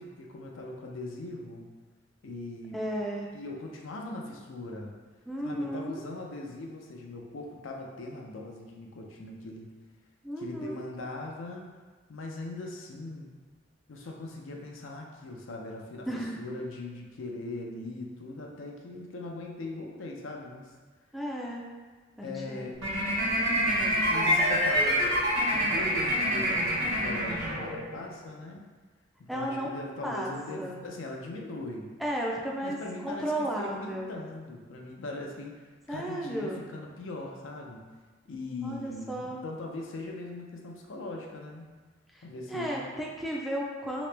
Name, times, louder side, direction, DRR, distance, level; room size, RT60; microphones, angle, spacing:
voice 1, 0.0-1.7 2.2-2.8 3.3-4.9 5.4-9.7 10.4-11.7 12.1-13.3 13.9-16.1 16.4-20.7 22.2-22.8 24.1-25.2 25.5-28.6 29.2-31.9 32.6-37.8 38.3-41.7 42.2-42.9, left 2 dB, 75° left, 0 dB, 0.5 m, -40 dB
voice 2, 2.7-3.3 5.3-6.1 10.2-10.9 16.1-16.5 21.1-21.7 22.2-22.7 23.3-24.6 29.3-29.7 30.0-30.8 32.0-32.8 33.0-34.1 35.9-36.6 38.6-39.4 42.1-44.1, right 1 dB, ahead, -3 dB, 0.4 m, -34 dB
sound 1, 22.8-28.0, equal, 70° right, 1.1 m, -26 dB
3.0 x 2.9 x 3.2 m, 1.4 s
head